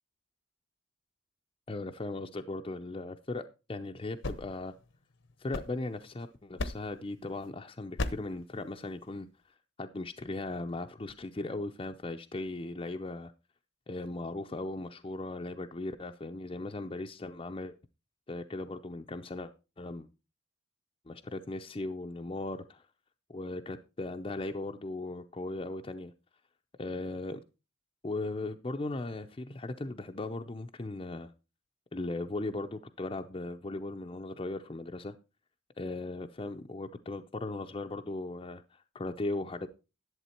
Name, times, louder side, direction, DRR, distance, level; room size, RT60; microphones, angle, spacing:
voice 1, 1.7-3.4 3.7-4.7 5.4-9.3 9.8-13.3 13.9-17.7 18.3-20.1 21.1-22.8 23.3-26.1 26.8-27.4 28.0-31.3 31.9-35.1 35.8-39.7, left 2 dB, 25° left, 0.5 m, -38 dB
sound 1, 4.0-6.2 6.6-7.1 8.0-8.4, left 2 dB, 65° left, 0.8 m, -38 dB
11.0 x 7.8 x 4.4 m
head